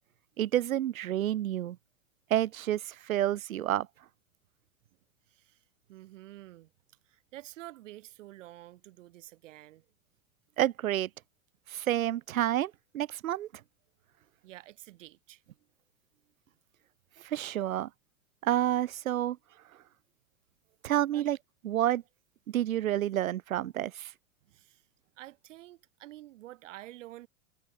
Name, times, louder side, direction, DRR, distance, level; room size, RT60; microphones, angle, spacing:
voice 1, 0.4-1.8 2.3-3.9 10.6-11.1 11.7-13.5 17.2-17.9 18.4-19.4 20.8-21.4 21.6-22.0 22.5-24.1, right 12 dB, 80° right, 0.7 m, -29 dB
voice 2, 5.3-5.6 5.9-6.7 7.1-9.8 14.4-15.4 21.1-21.3 24.5-24.8 25.2-27.3, right 15 dB, 65° right, 1.1 m, -49 dB
hypercardioid pair, 100°, 41 cm